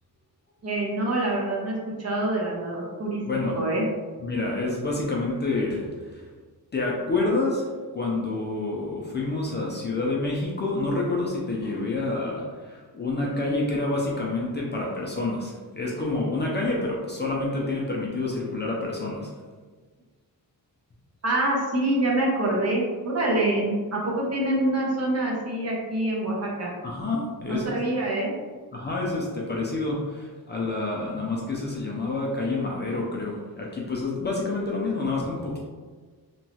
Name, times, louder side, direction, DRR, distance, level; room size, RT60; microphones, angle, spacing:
voice 1, 0.6-3.2 3.6-3.8 21.2-26.7 27.5-28.4, right 1 dB, 40° right, -3 dB, 0.7 m, -26 dB
voice 2, 3.3-3.6 4.2-6.3 6.7-7.7 7.9-19.3 26.8-27.7 28.7-35.6, left 2 dB, 30° left, -3 dB, 0.4 m, -28 dB
2.9 x 2.2 x 2.7 m, 1.5 s
wide cardioid pair, 145°, 38 cm